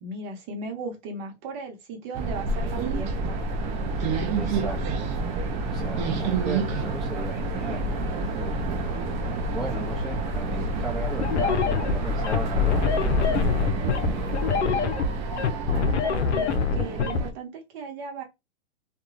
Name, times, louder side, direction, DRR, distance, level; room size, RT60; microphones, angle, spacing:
voice 1, 0.0-3.4 15.7-18.2, right 3 dB, 40° right, 0.9 m, -37 dB
sound 1, 2.1-17.3, right 3 dB, 20° right, 0.3 m, -29 dB
voice 2, 4.0-5.1 5.7-7.8 8.3-9.1 9.5-14.8, right 2 dB, ahead, 0.7 m, -37 dB
sound 2, 5.7-14.6, left 6 dB, 50° left, 0.8 m, -34 dB
sound 3, 11.2-17.2, left 6 dB, 85° left, 0.6 m, -25 dB
2.3 x 2.2 x 3.1 m
hypercardioid pair, 125°, 33 cm